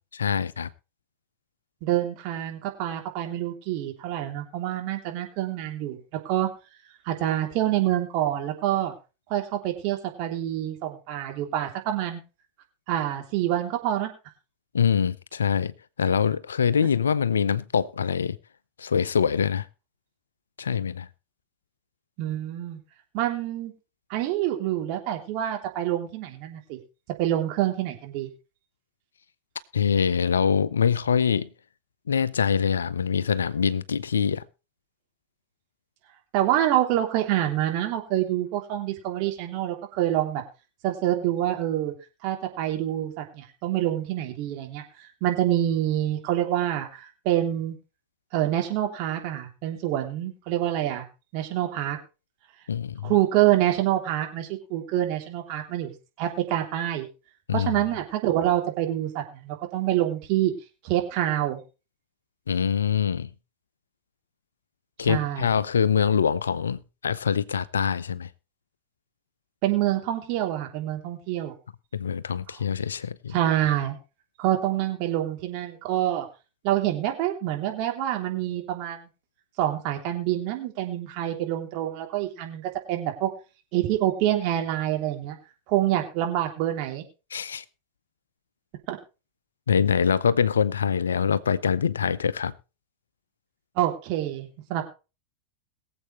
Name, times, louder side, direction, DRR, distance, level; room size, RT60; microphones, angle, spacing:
voice 1, 0.2-0.7 14.7-15.7 16.0-18.4 18.8-19.7 20.6-21.1 29.7-31.5 32.1-34.4 52.7-53.1 57.5-57.7 62.5-63.3 65.0-68.3 71.9-73.3 87.3-87.6 89.7-92.5, left 7 dB, 80° left, 0.7 m, -24 dB
voice 2, 1.8-6.0 6.2-6.5 7.0-8.9 9.3-12.2 12.9-14.1 22.2-22.8 23.1-23.7 24.1-26.8 27.2-28.3 36.3-40.4 40.8-41.9 42.2-47.8 48.3-51.0 51.3-52.0 53.0-57.1 57.5-60.5 60.8-61.6 65.1-65.5 69.6-71.5 73.3-74.0 74.4-76.3 76.6-79.1 79.6-83.3 83.7-85.4 85.7-87.0 88.9-89.0 93.7-94.8, right 13 dB, 50° right, 3.3 m, -26 dB
22.0 x 7.9 x 3.2 m
figure-of-eight pair, 90°, 0 cm